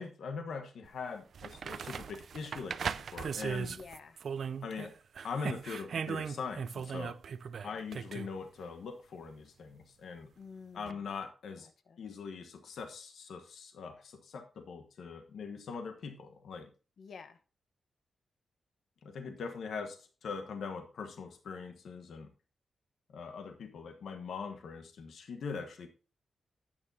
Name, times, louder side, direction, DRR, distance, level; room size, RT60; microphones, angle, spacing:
voice 1, 0.0-3.8 4.6-4.9 5.2-7.2 7.6-10.3 10.7-11.7 12.0-16.7 19.0-22.3 23.1-25.9, left 5 dB, 80° left, 6 dB, 1.3 m, -42 dB
sound 1, 0.8-0.9 1.3-4.9 5.1-8.3 10.9-11.0, right 6 dB, 60° right, 0.4 m, -38 dB
voice 2, 3.6-4.2 7.7-8.1 10.4-11.0 11.5-12.0 17.0-17.4, left 5 dB, 65° left, 10 dB, 1.0 m, -51 dB
11.0 x 8.9 x 2.7 m, 0.34 s
wide cardioid pair, 140°, 0 cm